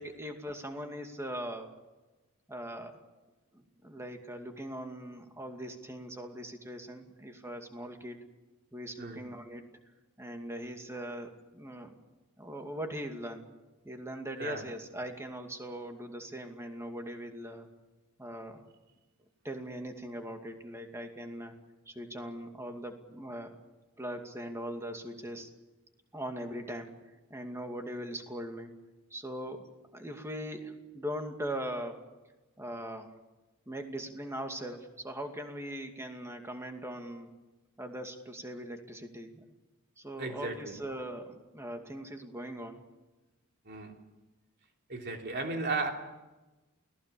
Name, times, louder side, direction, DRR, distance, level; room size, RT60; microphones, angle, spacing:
voice 1, 0.0-1.7 2.5-3.0 3.5-8.2 8.7-9.6 10.2-11.9 12.4-13.5 13.8-17.7 18.2-18.6 19.4-21.5 21.9-23.6 24.0-25.5 26.1-26.9 27.3-28.7 29.1-29.7 29.9-32.0 32.6-33.1 33.7-37.3 37.8-39.4 40.0-42.8, equal, 10° right, 4 dB, 2.4 m, -40 dB
voice 2, 40.2-40.7 43.6-43.9 44.9-45.9, right 3 dB, 50° right, 2 dB, 3.3 m, -35 dB
29.0 x 18.5 x 7.0 m, 1.1 s
head